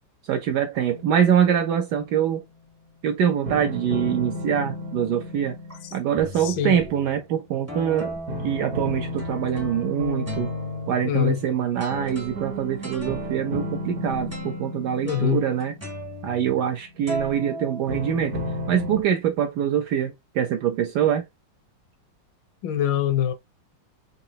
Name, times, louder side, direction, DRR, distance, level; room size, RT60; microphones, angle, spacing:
voice 1, 0.3-2.4 3.0-5.5 5.9-8.2 8.4-10.5 10.9-15.7 16.2-18.4 18.7-21.2, right 9 dB, 75° right, 1.0 m, -24 dB
sound 1, 0.9-2.1 3.5-7.5 8.3-17.1 17.9-19.0, left 1 dB, 55° right, 1.2 m, -34 dB
sound 2, 4.7-5.1 5.7-5.8 6.2-7.2 7.7-9.9 10.3-16.8 17.1-18.5, right 1 dB, 15° right, 0.5 m, -38 dB
voice 2, 6.4-6.9 11.0-11.4 15.0-15.4 22.6-23.3, left 11 dB, 80° left, 1.3 m, -24 dB
4.0 x 2.7 x 2.7 m
omnidirectional pair, 2.0 m